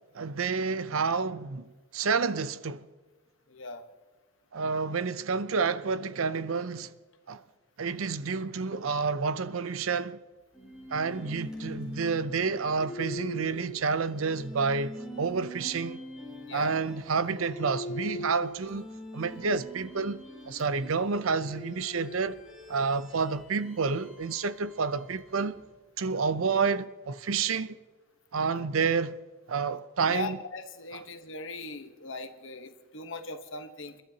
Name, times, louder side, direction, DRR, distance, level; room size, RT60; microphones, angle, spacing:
voice 1, 0.1-2.8 4.5-6.9 7.3-7.4 7.8-10.2 10.9-16.0 16.5-18.9 19.1-22.4 22.7-25.6 26.0-27.8 28.3-29.2 29.5-30.4 30.9-31.0, right 5 dB, 75° right, 0.6 m, -29 dB
voice 2, 3.5-3.8 16.4-16.8 30.1-34.0, left 2 dB, 65° left, 1.1 m, -39 dB
sound 1, 10.5-25.6, equal, 5° right, 4.0 m, -43 dB
29.0 x 12.5 x 2.8 m
head